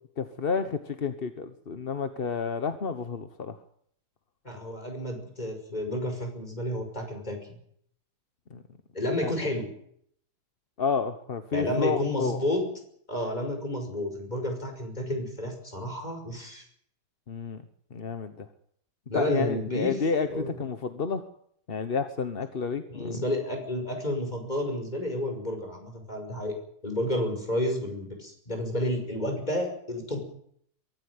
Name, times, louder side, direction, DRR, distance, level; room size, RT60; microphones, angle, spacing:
voice 1, 0.2-3.6 8.5-8.6 9.2-9.3 10.8-12.4 17.3-17.6 17.9-18.5 19.1-21.3 21.7-23.2, left 5 dB, 35° left, 9 dB, 1.0 m, -30 dB
voice 2, 4.4-7.6 8.9-9.7 11.5-12.7 13.1-16.6 19.1-20.0 20.3-20.5 22.9-26.6 26.8-30.2, left 1 dB, 20° left, 4 dB, 5.7 m, -31 dB
23.5 x 13.5 x 9.6 m, 0.67 s
omnidirectional pair, 2.2 m